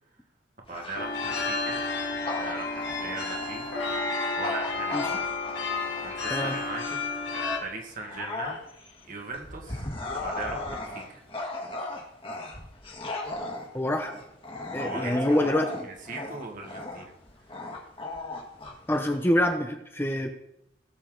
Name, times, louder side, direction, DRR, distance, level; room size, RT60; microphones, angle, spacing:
Bark / Growling, 0.6-7.2 7.7-19.6, left 2 dB, 30° left, 1.9 m, -37 dB
voice 1, 0.7-1.8 2.2-3.6 4.4-5.2 5.6-5.7 6.0-7.0 7.6-8.6 9.1-9.9 10.2-11.2 14.8-15.6 15.8-17.1 17.5-17.7, right 3 dB, 45° right, 1 dB, 1.9 m, -39 dB
sound 1, 0.9-7.6, left 3 dB, 70° left, 2.1 m, -31 dB
voice 2, 13.7-14.1 14.7-15.9 18.9-20.3, left 1 dB, 10° left, 5 dB, 0.8 m, -26 dB
17.5 x 7.1 x 3.9 m, 0.78 s
head